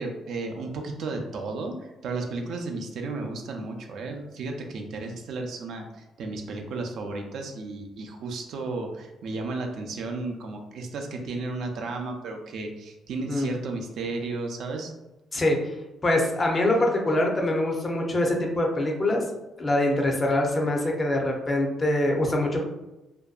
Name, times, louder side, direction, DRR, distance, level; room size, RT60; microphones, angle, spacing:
voice 1, 0.0-14.9, right 3 dB, 70° right, 3 dB, 0.4 m, -33 dB
voice 2, 16.0-19.2 19.6-22.6, left 1 dB, 30° left, 1 dB, 0.5 m, -24 dB
2.6 x 2.2 x 2.3 m, 0.97 s
cardioid pair, 90°, 0 cm